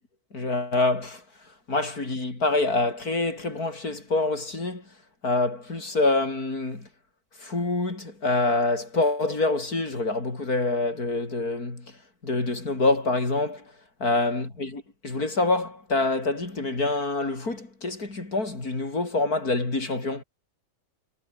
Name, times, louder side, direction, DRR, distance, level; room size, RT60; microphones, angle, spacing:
voice 1, 0.3-1.2 1.7-4.8 5.2-6.9 7.4-11.9 12.2-13.6 14.0-20.2, left 2 dB, 90° left, 5.6 m, -26 dB
omnidirectional pair, 1.5 m